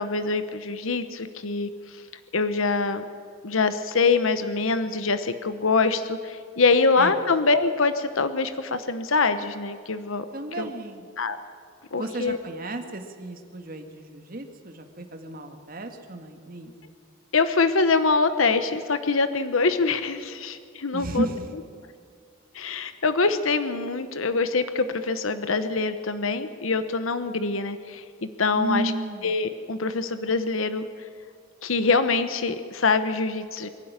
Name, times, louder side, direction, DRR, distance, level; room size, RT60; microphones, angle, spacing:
voice 1, 0.0-1.7 2.3-3.0 3.4-10.2 10.6-10.7 11.2-11.4 11.9-12.4 17.3-21.3 22.5-28.9 29.2-30.9 31.6-33.7, left 4 dB, 75° left, 11 dB, 1.1 m, -24 dB
voice 2, 10.3-11.1 11.9-16.7 20.9-21.5 28.5-29.3, right 2 dB, 40° right, 5 dB, 1.9 m, -33 dB
24.0 x 12.0 x 9.7 m, 2.2 s
head